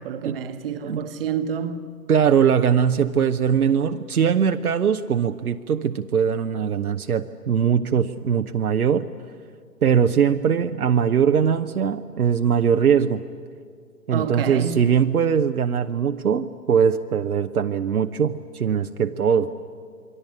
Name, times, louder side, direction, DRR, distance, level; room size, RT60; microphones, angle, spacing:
voice 1, 0.0-1.9 14.1-14.8, right 7 dB, 35° right, 1.3 m, -28 dB
voice 2, 2.1-9.0 9.8-13.2 14.1-19.5, right 7 dB, 60° right, 0.9 m, -21 dB
28.0 x 23.0 x 8.5 m
figure-of-eight pair, 130°, 49 cm